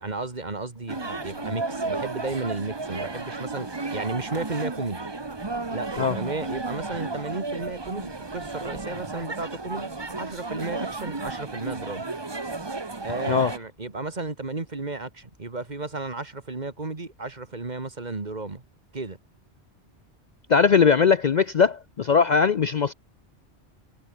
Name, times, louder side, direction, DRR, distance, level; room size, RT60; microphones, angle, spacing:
voice 1, 0.0-3.7 3.9-5.1 5.7-12.1 13.0-18.6 18.9-19.2, right 3 dB, 40° right, 2.0 m, -33 dB
sound 1, 0.9-7.2, left 2 dB, 70° left, 4.5 m, -52 dB
sound 2, 0.9-13.6, right 3 dB, 25° right, 1.2 m, -33 dB
voice 2, 20.5-22.9, left 6 dB, 50° left, 0.6 m, -20 dB
omnidirectional pair, 1.1 m